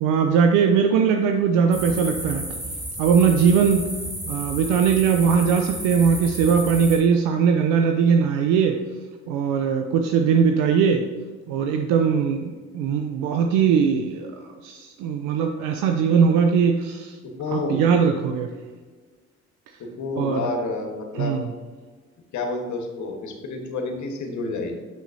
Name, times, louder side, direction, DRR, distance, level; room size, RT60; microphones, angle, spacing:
voice 1, 0.0-2.5 3.0-3.9 4.3-8.8 9.3-11.0 11.5-14.3 14.6-17.2 17.5-18.5 20.2-20.5 21.2-21.5, right 6 dB, 75° right, 5 dB, 0.5 m, -20 dB
sound 1, 1.7-7.0, right 1 dB, 10° right, 1.5 m, -33 dB
voice 2, 17.2-17.9 20.0-21.4 22.3-24.8, left 3 dB, 65° left, 4 dB, 1.2 m, -29 dB
6.6 x 6.2 x 2.6 m, 1.4 s
hypercardioid pair, 55°, 32 cm